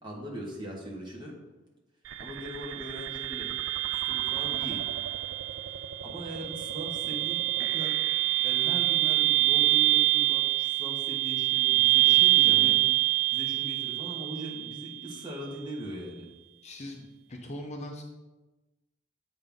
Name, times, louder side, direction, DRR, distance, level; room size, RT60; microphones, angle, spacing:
voice 1, 0.0-1.3 2.2-3.5 3.9-4.9 6.0-7.9 8.4-12.8 13.3-16.3, equal, 25° right, -3 dB, 1.5 m, -40 dB
sound 1, 2.1-15.1, right 20 dB, 70° right, 0.4 m, -26 dB
voice 2, 12.0-12.8 16.6-18.0, left 1 dB, 35° left, 1 dB, 0.7 m, -40 dB
7.8 x 5.8 x 3.6 m, 1.1 s
head